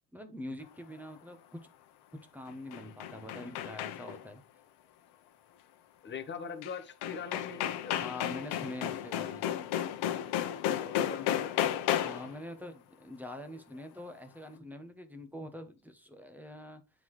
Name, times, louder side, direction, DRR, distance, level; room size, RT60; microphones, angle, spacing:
voice 1, 0.1-1.6 2.3-4.4 8.0-9.5 12.0-16.8, left 1 dB, 5° right, 0.9 m, -44 dB
sound 1, 2.5-4.3 6.6-6.7 7.0-12.4, left 11 dB, 70° left, 0.9 m, -33 dB
voice 2, 6.0-8.0 10.8-11.5, left 6 dB, 25° left, 1.0 m, -41 dB
9.5 x 3.8 x 3.2 m
cardioid pair, 145°, 40 cm